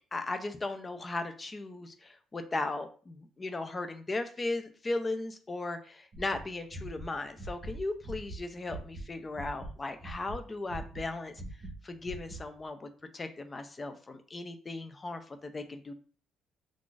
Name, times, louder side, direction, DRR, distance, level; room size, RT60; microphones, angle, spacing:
voice 1, 0.1-11.3 11.8-15.9, left 2 dB, 20° left, 8 dB, 0.3 m, -37 dB
sound 1, 6.1-9.0 9.3-11.8 12.0-12.4, right 1 dB, 35° right, 0.7 m, -42 dB
2.4 x 2.4 x 3.8 m, 0.41 s
cardioid pair, 155°, 0 cm